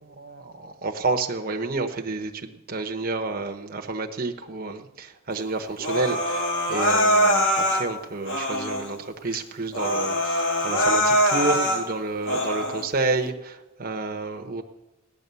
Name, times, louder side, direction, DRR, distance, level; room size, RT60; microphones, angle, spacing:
voice 1, 0.0-14.6, right 3 dB, 40° right, 4 dB, 1.0 m, -30 dB
Human voice, 5.8-7.9 8.3-8.9 9.3-9.4 9.7-11.8 12.2-12.8, equal, 55° left, 2.1 m, -23 dB
17.0 x 9.9 x 6.9 m, 1.0 s
head